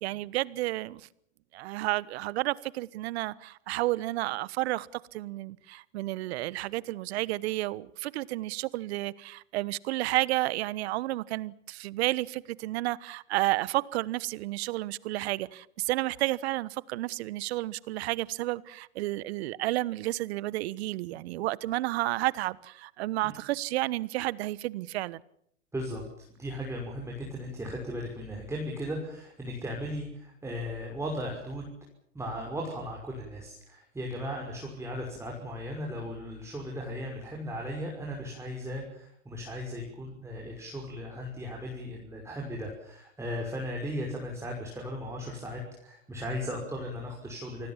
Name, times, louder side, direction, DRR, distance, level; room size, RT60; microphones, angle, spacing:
voice 1, 0.0-1.1 1.5-25.2, right 18 dB, 55° right, 1.2 m, -31 dB
voice 2, 26.4-31.7 32.1-47.7, equal, 5° right, 5.7 m, -37 dB
28.5 x 20.0 x 7.3 m
hypercardioid pair, 125°, 38 cm